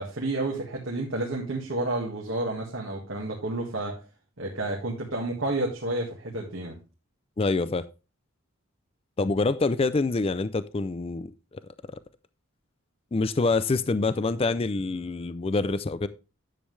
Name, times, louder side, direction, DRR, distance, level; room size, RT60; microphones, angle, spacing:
voice 1, 0.0-4.0 4.4-6.8, right 2 dB, 65° right, 1.8 m, -30 dB
voice 2, 7.4-7.9 9.2-11.3 11.9-12.0 13.1-16.1, left 3 dB, 25° left, 0.4 m, -26 dB
10.0 x 7.4 x 3.2 m
head